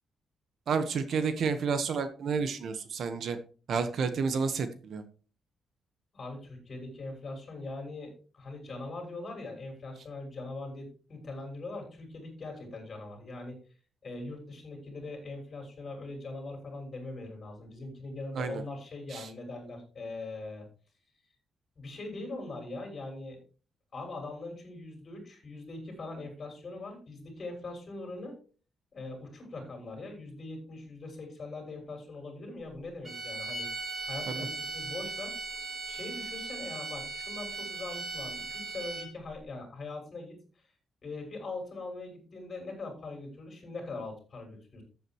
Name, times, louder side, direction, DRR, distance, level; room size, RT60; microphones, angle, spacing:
voice 1, 0.7-3.4 3.7-5.0 18.4-18.6 19.1-19.3 34.3-34.5, right 5 dB, 60° right, 10 dB, 1.2 m, -30 dB
voice 2, 6.1-13.6 14.0-20.6 21.8-23.4 23.9-28.4 28.9-33.7 34.0-35.3 35.9-40.4 41.0-44.8, left 2 dB, 35° left, 2 dB, 6.2 m, -41 dB
sound 1, 33.0-39.3, right 3 dB, 30° right, 3.7 m, -38 dB
14.5 x 8.7 x 3.0 m, 0.37 s
cardioid pair, 140°, 0 cm